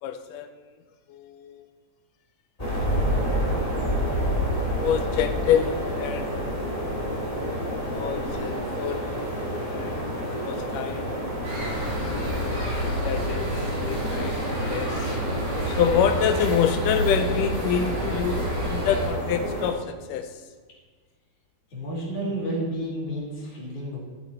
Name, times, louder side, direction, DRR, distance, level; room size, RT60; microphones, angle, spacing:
voice 1, 0.0-0.5 1.1-1.6 2.6-2.9 3.7-4.4 4.8-6.3 7.7-9.3 9.7-11.1 12.1-15.2 15.7-20.4, left 8 dB, 85° left, 8 dB, 1.9 m, -27 dB
sound 1, 2.6-19.7, equal, 15° left, 1.3 m, -29 dB
sound 2, 11.4-19.1, right 1 dB, 85° right, 5.3 m, -30 dB
voice 2, 21.7-24.0, right 1 dB, 55° left, -5 dB, 4.1 m, -31 dB
14.0 x 7.0 x 4.3 m, 1.5 s
omnidirectional pair, 4.3 m